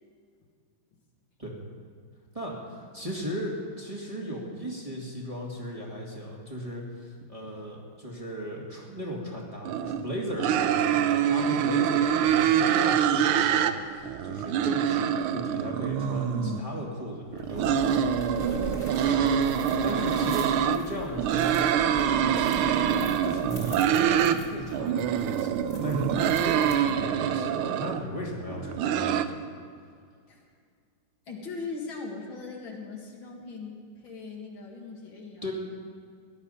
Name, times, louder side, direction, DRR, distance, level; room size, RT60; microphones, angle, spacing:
voice 1, 2.3-19.4 19.8-22.9 23.2-29.4 35.4-35.5, equal, 15° right, -3 dB, 2.2 m, -36 dB
sound 1, 9.6-10.0 10.4-13.7 14.0-16.6 17.3-20.8 21.2-24.4 24.7-28.0 28.5-29.2, right 9 dB, 90° right, 1.6 m, -25 dB
voice 2, 16.3-16.7 30.3-30.4 31.3-35.5, left 4 dB, 70° left, -1 dB, 2.8 m, -39 dB
sound 2, 17.3-27.2, left 3 dB, 35° left, 2.6 m, -43 dB
18.0 x 11.5 x 5.7 m, 2.1 s
omnidirectional pair, 2.3 m